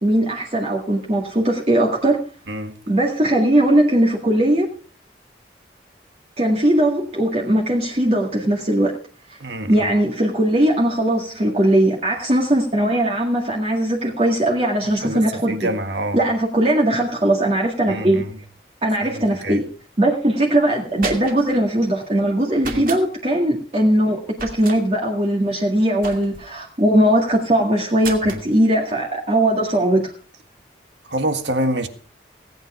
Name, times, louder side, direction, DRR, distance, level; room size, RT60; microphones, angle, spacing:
voice 1, 0.0-2.2 2.9-4.7 6.4-8.9 9.3-9.4 9.7-15.7 16.1-18.2 18.8-19.6 20.0-30.1, right 1 dB, 35° right, 2.0 m, -19 dB
voice 2, 9.4-9.9 14.8-16.2 17.9-18.4 19.0-19.6 22.6-22.9 28.2-28.4 31.1-31.9, right 1 dB, 85° right, 1.8 m, -26 dB
sound 1, 20.7-21.6 22.6-23.0 24.3-24.8 26.0-26.5 28.0-28.5, right 4 dB, 50° right, 2.5 m, -32 dB
17.5 x 9.1 x 5.0 m
head